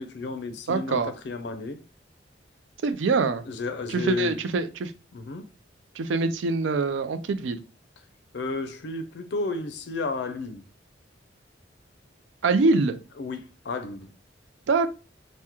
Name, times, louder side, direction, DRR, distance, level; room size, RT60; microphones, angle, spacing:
voice 1, 0.0-1.8 3.5-4.4 5.1-5.5 8.3-10.7 13.2-14.1, left 3 dB, 60° left, 0.4 m, -32 dB
voice 2, 0.7-1.1 2.8-3.4 3.9-4.9 5.9-7.6 12.4-13.0 14.7-14.9, right 4 dB, 80° right, 0.4 m, -24 dB
3.5 x 2.1 x 2.9 m
head